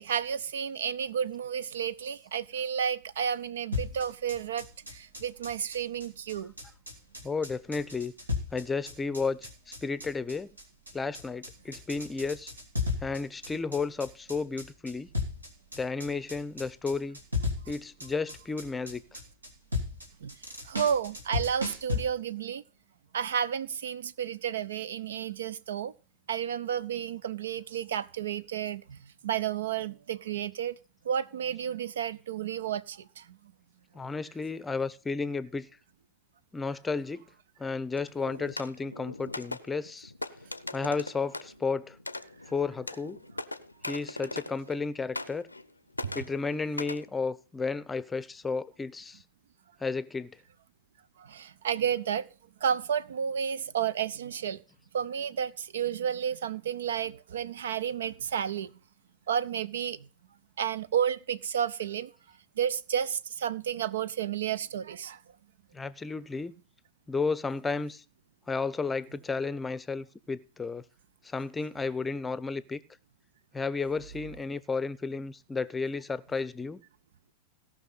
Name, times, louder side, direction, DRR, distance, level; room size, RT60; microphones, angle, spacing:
voice 1, 0.0-4.7 4.9-6.5 20.2-20.3 20.7-22.6 23.1-25.9 26.3-29.0 29.2-30.7 31.1-33.2 51.3-52.3 52.6-54.6 54.9-58.7 59.3-60.0 60.6-62.1 62.6-65.2, right 8 dB, 65° right, 0.6 m, -31 dB
sound 1, 3.7-22.0, left 4 dB, 80° right, 2.7 m, -35 dB
voice 2, 7.2-8.1 8.5-9.4 9.8-10.5 10.9-12.5 13.0-15.1 15.8-17.2 17.7-19.2 33.9-35.7 36.5-37.2 37.6-40.1 40.7-42.0 42.5-43.2 43.9-45.5 46.1-49.2 49.8-50.4 65.7-66.5 67.1-68.0 68.5-70.8 71.2-72.8 73.5-76.8, left 4 dB, 15° left, 0.7 m, -32 dB
sound 2, 38.0-44.8 45.1-45.7 45.9-47.1, left 2 dB, 85° left, 0.6 m, -40 dB
17.5 x 6.1 x 5.6 m
figure-of-eight pair, 90°, 0 cm